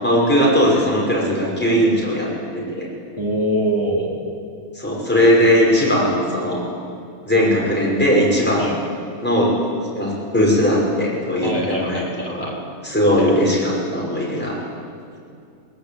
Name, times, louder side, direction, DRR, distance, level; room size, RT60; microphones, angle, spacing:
voice 1, 0.0-2.9 4.7-6.6 7.2-8.7 9.2-9.5 9.9-12.5 12.8-14.6, equal, 5° left, -5 dB, 6.1 m, -18 dB
voice 2, 3.2-4.2 8.6-8.8 11.4-12.6 13.2-13.3, right 1 dB, 20° right, -3 dB, 3.6 m, -24 dB
22.0 x 20.0 x 8.8 m, 2.4 s
omnidirectional pair, 1.6 m